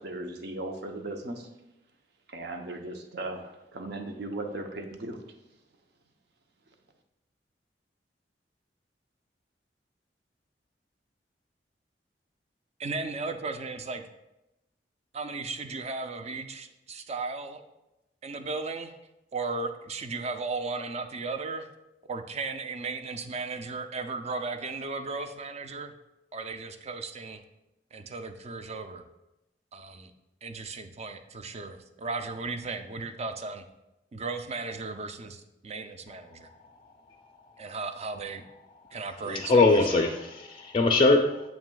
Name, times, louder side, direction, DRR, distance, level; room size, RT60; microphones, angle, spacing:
voice 1, 0.0-1.5 2.3-5.2, right 2 dB, 65° right, 5 dB, 0.7 m, -37 dB
voice 2, 12.8-14.0 15.1-17.6 18.2-18.9 19.3-21.7 22.1-25.9 26.3-27.4 27.9-29.0 29.7-30.1 30.4-33.7 34.1-36.5 37.6-38.4 38.9-40.1, right 3 dB, 35° right, 8 dB, 0.4 m, -36 dB
voice 3, 39.3-41.4, left 3 dB, 30° left, 3 dB, 0.4 m, -22 dB
7.2 x 6.0 x 2.3 m, 0.92 s
head